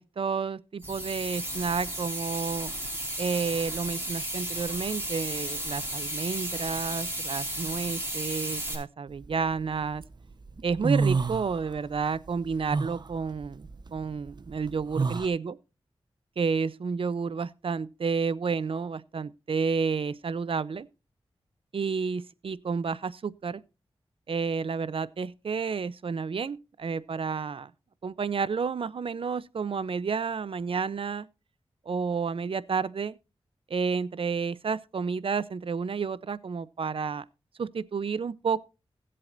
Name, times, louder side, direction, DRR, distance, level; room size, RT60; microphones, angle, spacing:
voice 1, 0.0-2.7 3.2-10.0 10.6-15.6 16.4-20.9 21.7-23.6 24.3-27.7 28.0-31.3 31.9-33.2 33.7-37.2 37.6-38.6, right 5 dB, 65° right, 0.6 m, -30 dB
sound 1, 0.8-8.8, right 1 dB, 20° right, 4.8 m, -34 dB
sound 2, 9.2-10.0 10.4-12.0 12.3-15.3, right 4 dB, 45° right, 0.9 m, -29 dB
20.5 x 7.6 x 2.6 m
wide cardioid pair, 70°, 10 cm